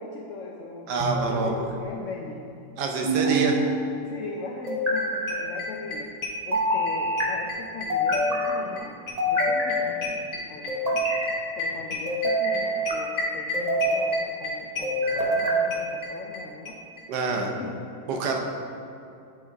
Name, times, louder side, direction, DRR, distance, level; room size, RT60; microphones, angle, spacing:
voice 1, 0.0-2.4 4.0-6.1 6.5-8.9 9.3-11.1 11.6-16.8 17.3-17.8 18.1-18.4, left 3 dB, 85° left, 1 dB, 0.6 m, -39 dB
voice 2, 0.9-1.6 2.8-3.6 17.1-17.6 18.1-18.4, right 4 dB, 75° right, 2 dB, 1.3 m, -26 dB
sound 1, 1.0-1.7 3.0-3.8 4.7-5.4 6.5-7.3 7.9-8.5 9.2-10.0 10.7-11.3 12.1-13.0 13.5-14.1 14.8-15.6, equal, 35° right, 0.7 m, -25 dB
sound 2, 4.6-4.7 5.0-5.1 5.3-6.9 7.2-16.4 16.7-16.8 17.0-17.1 17.3-17.4, left 3 dB, 55° left, 1.6 m, -32 dB
8.5 x 3.7 x 4.0 m, 2.6 s
omnidirectional pair, 1.9 m